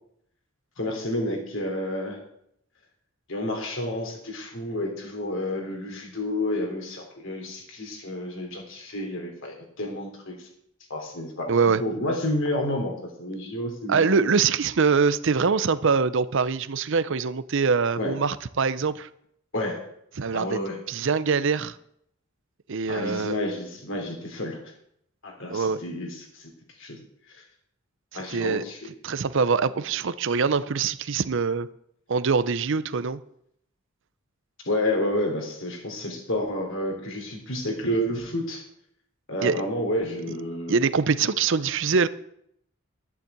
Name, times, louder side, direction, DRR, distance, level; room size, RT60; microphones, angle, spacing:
voice 1, 0.8-2.2 3.3-10.5 10.9-11.5 11.8-14.3 18.0-18.2 19.5-19.8 20.3-20.8 22.9-24.6 25.2-26.5 26.8-27.0 27.3-27.4 28.1-28.9 34.6-38.6 39.3-40.8, left 1 dB, 65° left, 3.3 m, -30 dB
voice 2, 11.5-11.8 13.9-19.1 20.2-20.6 20.9-21.7 22.7-23.4 25.5-25.8 28.3-28.6 29.0-31.7 32.1-33.2 39.4-39.6 40.7-42.1, right 5 dB, 60° right, 0.6 m, -23 dB
12.0 x 7.3 x 8.1 m
head